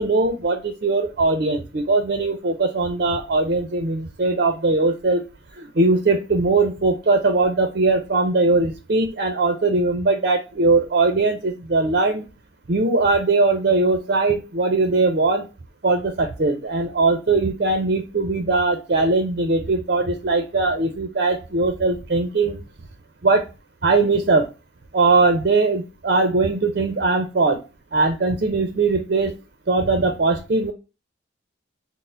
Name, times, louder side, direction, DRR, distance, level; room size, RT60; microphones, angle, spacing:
voice 1, 0.0-5.2 5.6-12.2 12.7-15.4 15.8-22.6 23.2-23.5 23.8-24.5 24.9-27.6 27.9-29.3 29.7-30.7, right 3 dB, 50° right, 6 dB, 0.5 m, -20 dB
4.0 x 2.1 x 3.8 m, 0.29 s
head